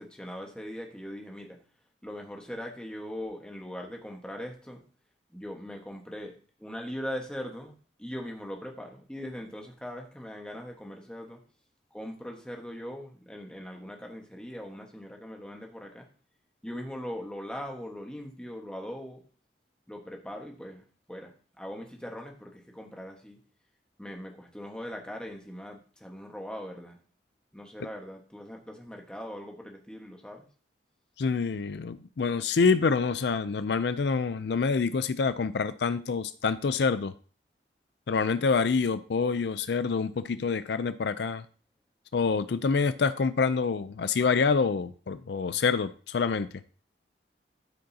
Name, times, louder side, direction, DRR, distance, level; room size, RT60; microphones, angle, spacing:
voice 1, 0.0-1.6 2.0-4.8 5.3-11.4 11.9-16.1 16.6-19.2 19.9-23.4 24.0-27.0 27.5-30.5, equal, 5° left, 1 dB, 1.3 m, -40 dB
voice 2, 31.2-37.1 38.1-41.4 42.1-46.5, left 5 dB, 70° left, 12 dB, 0.4 m, -26 dB
13.0 x 5.2 x 2.8 m, 0.39 s
head